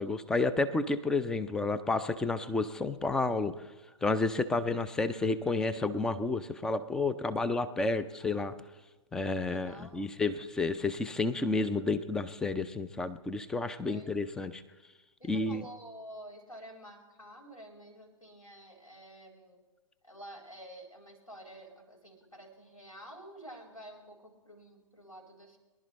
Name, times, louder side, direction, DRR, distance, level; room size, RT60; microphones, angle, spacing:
voice 1, 0.0-3.5 4.0-8.5 9.1-14.6 15.3-15.6, left 3 dB, 5° left, 14 dB, 0.3 m, -30 dB
voice 2, 9.4-10.1 13.8-14.1 15.2-19.6 20.0-25.6, right 1 dB, 90° left, 1 dB, 4.8 m, -50 dB
23.0 x 11.5 x 3.2 m, 1.1 s
figure-of-eight pair, 120°, 17 cm